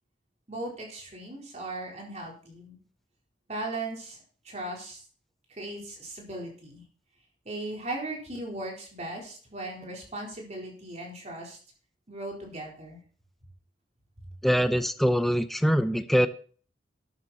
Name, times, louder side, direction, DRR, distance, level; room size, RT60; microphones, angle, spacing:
voice 1, 0.5-2.8 3.5-4.2 4.4-5.0 5.5-6.8 7.4-11.6 12.1-13.0, right 2 dB, 40° right, 0 dB, 4.2 m, -37 dB
voice 2, 14.4-16.3, equal, ahead, 10 dB, 0.7 m, -23 dB
13.0 x 9.6 x 4.3 m, 0.43 s
head